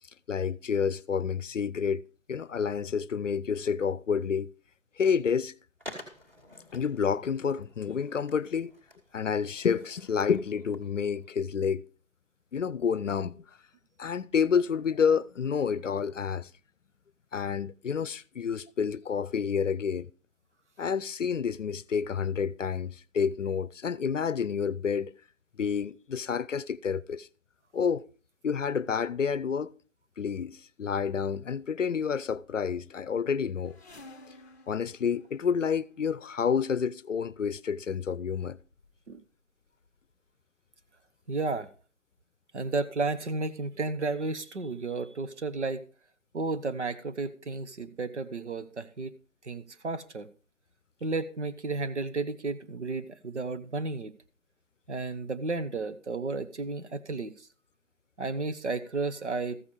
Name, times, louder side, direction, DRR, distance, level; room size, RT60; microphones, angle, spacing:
voice 1, 0.3-2.0 2.3-4.5 5.0-5.5 6.7-8.7 9.1-11.8 12.5-13.4 14.0-16.5 17.3-20.1 20.8-25.1 25.6-27.3 27.7-28.1 28.4-29.7 30.2-33.7 34.7-38.6, left 6 dB, 75° left, 0.6 m, -29 dB
Skateboard, 5.8-11.3, left 1 dB, 10° right, 1.3 m, -50 dB
sound 1, 33.6-36.1 37.1-37.3 38.1-38.2 38.4-39.3 39.6-40.1 40.8-40.9 41.3-41.4, left 2 dB, 15° left, 0.9 m, -54 dB
voice 2, 41.3-41.7 42.5-45.8 46.3-49.2 49.4-50.3 51.0-54.1 54.9-57.5 58.2-59.6, right 3 dB, 65° right, 1.1 m, -33 dB
14.0 x 7.0 x 4.8 m
figure-of-eight pair, 160°, 38 cm